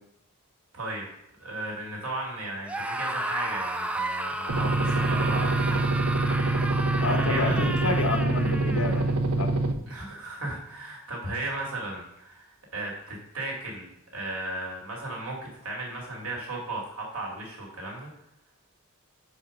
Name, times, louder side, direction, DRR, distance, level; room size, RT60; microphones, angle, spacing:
voice 1, 0.7-1.1 1.4-6.7 7.0-7.6 9.9-18.1, right 2 dB, 70° right, -2 dB, 2.3 m, -35 dB
Screaming, 2.6-9.1, right 2 dB, 5° right, 0.4 m, -32 dB
sound 1, 4.5-9.7, right 2 dB, 85° right, 0.7 m, -25 dB
voice 2, 7.0-9.5, left 3 dB, 70° left, 6 dB, 0.9 m, -29 dB
5.1 x 4.9 x 6.3 m, 0.76 s
head